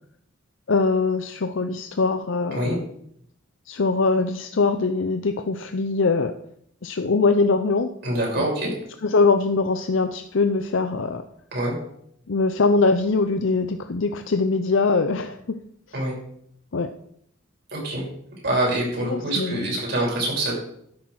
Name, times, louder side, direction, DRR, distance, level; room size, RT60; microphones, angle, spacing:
voice 1, 0.7-2.8 3.7-6.3 6.8-7.9 8.4-8.5 9.0-11.2 12.3-15.6 16.7-16.9 19.0-19.8, left 3 dB, 65° left, 8 dB, 0.6 m, -22 dB
voice 2, 8.0-8.7 11.5-11.7 15.9-16.1 17.7-18.0 18.4-20.5, right 1 dB, 50° right, -3 dB, 6.0 m, -25 dB
12.5 x 10.0 x 4.7 m, 0.71 s
head